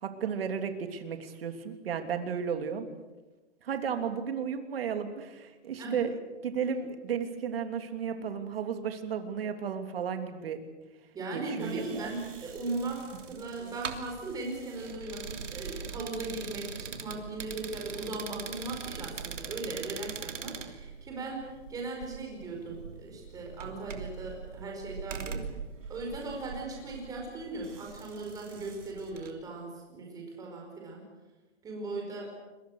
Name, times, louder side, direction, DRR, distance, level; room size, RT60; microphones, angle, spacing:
voice 1, 0.0-2.8 3.6-10.6 11.3-12.1, right 7 dB, 50° right, 7 dB, 3.1 m, -34 dB
voice 2, 11.1-25.4 25.9-31.0 31.6-32.3, right 2 dB, 10° right, 0 dB, 5.0 m, -38 dB
sound 1, 11.6-29.3, right 6 dB, 85° right, 3.2 m, -42 dB
29.5 x 22.0 x 6.6 m, 1.2 s
hypercardioid pair, 165°, 36 cm